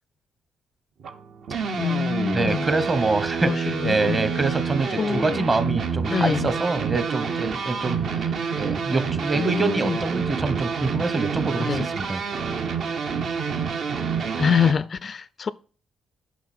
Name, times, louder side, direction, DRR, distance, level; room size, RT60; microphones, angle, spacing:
sound 1, 1.0-14.7, right 6 dB, 60° right, 0.9 m, -28 dB
voice 1, 1.7-2.7 3.4-4.2 5.0-5.8 6.1-6.6 9.4-10.0 11.6-11.9 14.4-15.5, left 6 dB, 40° left, 0.3 m, -25 dB
voice 2, 2.3-12.2, right 3 dB, 30° right, 1.0 m, -25 dB
9.4 x 5.8 x 4.4 m
cardioid pair, 90°, 0 cm